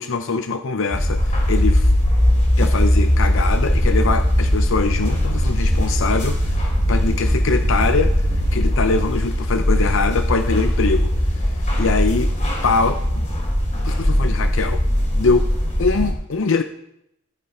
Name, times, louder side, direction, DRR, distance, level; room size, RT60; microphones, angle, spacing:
voice 1, 0.0-1.9 2.6-11.1 11.4-11.5 11.8-12.3 12.6-13.3 13.8-14.8 15.2-15.5 15.8-16.6, left 4 dB, 65° left, 8 dB, 0.6 m, -23 dB
sound 1, 0.9-16.1, left 1 dB, 35° left, 4.4 m, -20 dB
sound 2, 3.6-8.8, equal, 45° right, 1.1 m, -25 dB
16.0 x 7.1 x 5.0 m, 0.78 s
head